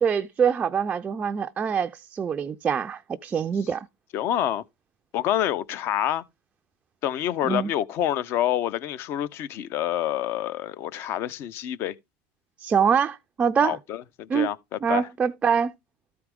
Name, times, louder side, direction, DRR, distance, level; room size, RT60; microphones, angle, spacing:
voice 1, 0.0-3.9 7.4-7.7 12.6-13.8 14.3-14.5 14.8-15.7, right 7 dB, 20° right, 0.4 m, -24 dB
voice 2, 4.1-4.6 5.1-6.2 7.0-11.9 13.6-15.1, left 11 dB, 45° left, 0.6 m, -27 dB
13.0 x 4.7 x 3.5 m
supercardioid pair, 135°, 6 cm